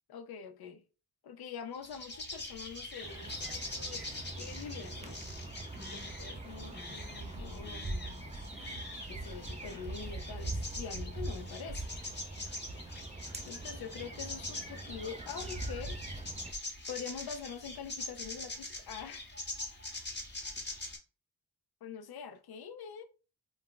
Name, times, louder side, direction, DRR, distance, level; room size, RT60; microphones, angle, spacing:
voice 1, 0.1-0.8 1.2-4.1 4.4-5.2 5.8-8.3 9.0-11.9 13.4-16.0 16.9-19.3 21.8-23.0, left 7 dB, 75° left, 0.5 m, -45 dB
sound 1, 1.7-21.0, left 2 dB, 30° left, 0.8 m, -44 dB
sound 2, 3.0-16.5, right 2 dB, 20° right, 0.4 m, -42 dB
2.3 x 2.0 x 3.6 m
cardioid pair, 55°, 37 cm